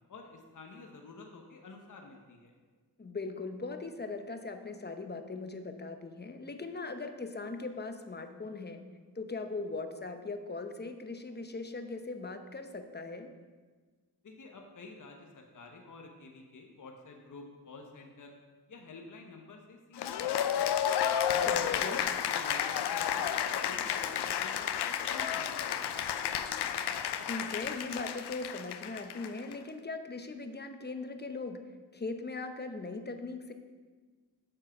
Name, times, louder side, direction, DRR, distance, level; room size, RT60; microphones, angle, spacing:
voice 1, 0.0-2.5 14.2-18.4 18.7-20.9 21.3-23.3 23.6-25.7 26.0-26.2, left 3 dB, 50° left, 2 dB, 1.1 m, -50 dB
voice 2, 3.0-8.8 9.1-13.3 21.5-22.1 27.3-31.6 31.9-33.5, left 3 dB, 25° left, 7 dB, 0.9 m, -39 dB
Cheering / Applause, 20.0-29.5, left 9 dB, 75° left, 0.6 m, -32 dB
7.6 x 4.6 x 6.0 m, 1.4 s
cardioid pair, 50°, 40 cm